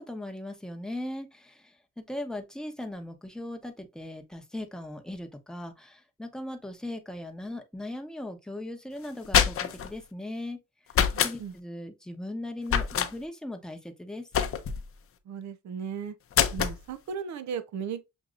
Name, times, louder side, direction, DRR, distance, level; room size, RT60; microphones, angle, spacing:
voice 1, 0.0-1.8 2.1-10.6 11.2-14.3, left 1 dB, ahead, 0.9 m, -38 dB
sound 1, 9.0-9.9 10.9-11.4 12.7-13.1 14.3-14.9 16.3-16.8, left 8 dB, 45° left, 0.6 m, -25 dB
voice 2, 11.1-11.6 15.3-16.1 16.5-18.0, right 7 dB, 65° right, 0.7 m, -36 dB
6.3 x 2.8 x 2.4 m
cardioid pair, 90°, 30 cm